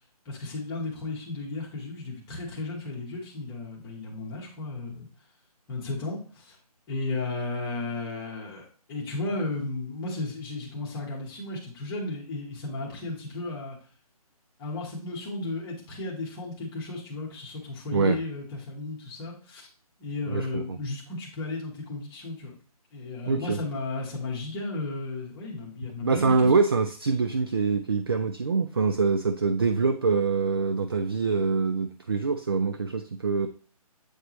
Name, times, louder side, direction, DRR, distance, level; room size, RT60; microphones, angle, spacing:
voice 1, 0.2-5.1 5.7-6.5 6.9-13.8 14.6-19.7 20.0-22.5 22.9-26.3, left 2 dB, 10° left, -5 dB, 1.1 m, -34 dB
voice 2, 20.3-20.8 23.3-23.6 26.0-33.5, right 4 dB, 40° right, 9 dB, 0.4 m, -25 dB
8.1 x 4.5 x 3.0 m, 0.40 s
hypercardioid pair, 170°, 20 cm